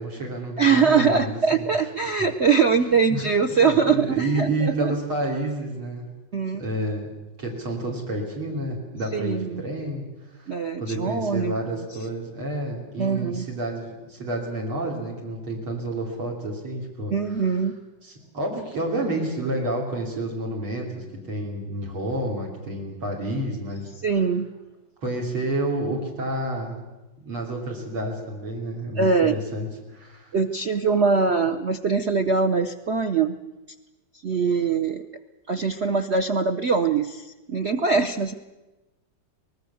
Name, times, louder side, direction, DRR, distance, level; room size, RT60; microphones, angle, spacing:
voice 1, 0.0-1.7 2.0-2.2 2.8-6.0 6.5-7.1 7.4-10.0 10.3-17.6 18.0-23.9 25.0-26.8 27.2-30.3, right 1 dB, 85° right, -1 dB, 4.1 m, -30 dB
voice 2, 0.6-4.9 6.3-6.6 9.1-9.6 10.5-11.8 13.0-13.5 17.1-17.8 24.0-24.5 29.0-29.4 30.3-33.3 34.2-35.0 35.5-38.3, right 5 dB, 60° right, 7 dB, 0.7 m, -22 dB
24.0 x 19.5 x 7.1 m, 1.1 s
omnidirectional pair, 2.2 m